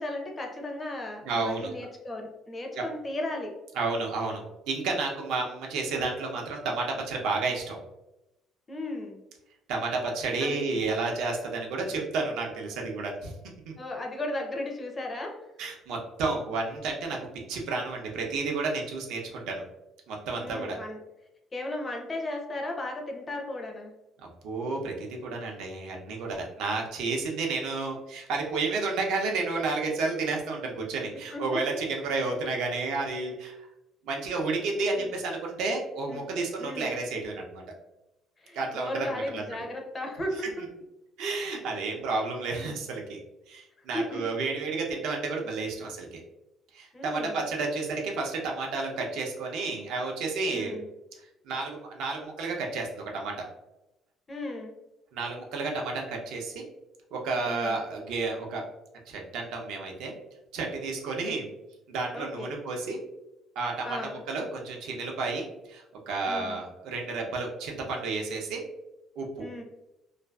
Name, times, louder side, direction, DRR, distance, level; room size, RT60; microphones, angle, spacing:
voice 1, 0.0-3.5 8.7-9.2 10.4-10.6 13.8-15.4 20.4-21.0 21.5-23.9 31.3-31.6 35.0-35.1 36.1-36.2 36.6-37.0 38.4-40.5 41.8-41.9 42.6-42.7 43.9-44.2 46.9-47.4 50.5-50.8 54.3-54.7 57.4-57.8 61.2-61.3 62.1-62.5 63.8-64.2 66.3-66.6 69.4-69.6, left 1 dB, 20° left, 1 dB, 0.4 m, -35 dB
voice 2, 1.2-1.7 2.7-2.8 3.8-7.8 9.7-13.3 13.7-13.8 15.6-17.2 17.5-19.6 20.1-20.8 24.2-33.6 34.0-37.6 38.5-39.4 41.2-43.2 43.5-46.2 46.7-50.8 51.5-53.3 55.1-56.6 57.1-58.6 59.1-60.1 60.5-61.5 61.9-63.0 63.6-68.6 69.2-69.5, right 3 dB, 80° right, 0 dB, 0.5 m, -31 dB
2.4 x 2.3 x 2.2 m, 0.93 s
cardioid pair, 155°, 0 cm